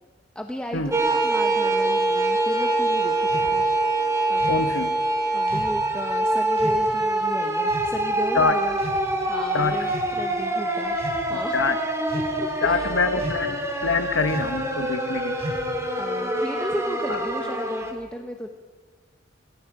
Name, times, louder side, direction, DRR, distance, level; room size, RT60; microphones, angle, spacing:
voice 1, 0.3-3.6 4.3-4.5 5.3-8.8 9.2-11.7 12.4-13.0 16.0-18.5, equal, 5° left, 3 dB, 1.0 m, -35 dB
sound 1, 0.9-17.9, right 2 dB, 15° right, 2.7 m, -25 dB
sound 2, 3.3-3.5 4.4-4.7 5.5-5.8 6.6-6.8 7.7-8.0 8.7-9.3 9.8-10.2 10.9-11.2 12.1-12.5 13.2-13.6 14.3-14.6 15.4-15.8, right 1 dB, 35° right, 4.7 m, -35 dB
voice 2, 4.5-4.9 8.3-8.6 9.5-9.9 11.5-11.8 12.6-15.4 17.1-17.2, left 4 dB, 80° left, 9 dB, 1.2 m, -25 dB
27.0 x 19.5 x 5.0 m, 1.6 s
head